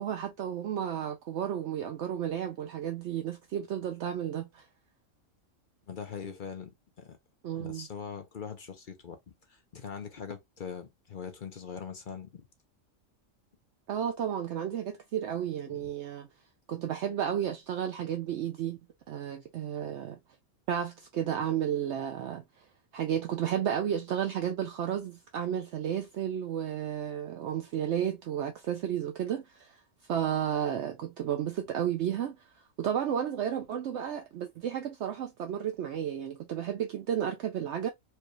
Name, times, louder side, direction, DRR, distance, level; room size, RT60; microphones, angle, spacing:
voice 1, 0.0-4.6 7.4-7.9 13.9-16.3 16.7-18.8 19.1-20.2 20.7-22.4 22.9-29.8 30.1-32.4 32.8-37.9, right 9 dB, 65° right, 0.8 m, -32 dB
voice 2, 5.9-6.7 7.0-7.2 7.5-12.5 15.7-15.9, left 6 dB, 50° left, 0.7 m, -42 dB
4.6 x 2.3 x 3.0 m
omnidirectional pair, 1.4 m